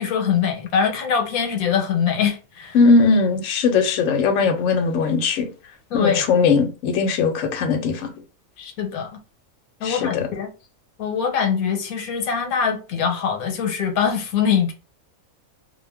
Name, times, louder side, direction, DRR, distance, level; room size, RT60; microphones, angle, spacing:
voice 1, 0.0-2.8 5.9-6.2 8.6-9.2 9.8-10.5 11.0-14.7, left 7 dB, 90° left, 1.1 m, -23 dB
voice 2, 2.7-5.5 5.9-8.1 9.8-10.3, left 4 dB, 70° left, 0.9 m, -19 dB
2.4 x 2.2 x 3.3 m
omnidirectional pair, 1.5 m